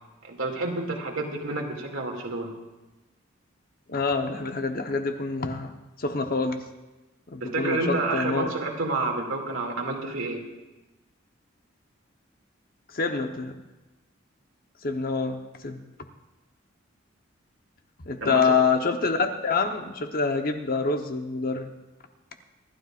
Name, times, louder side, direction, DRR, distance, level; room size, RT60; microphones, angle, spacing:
voice 1, 0.2-2.5 7.4-10.5 18.2-18.4, right 3 dB, 85° right, 1 dB, 2.4 m, -29 dB
voice 2, 3.9-6.6 7.3-8.5 12.9-13.6 14.8-15.8 18.0-21.7, left 4 dB, 45° left, 5 dB, 1.0 m, -26 dB
26.0 x 12.5 x 2.5 m, 1.1 s
head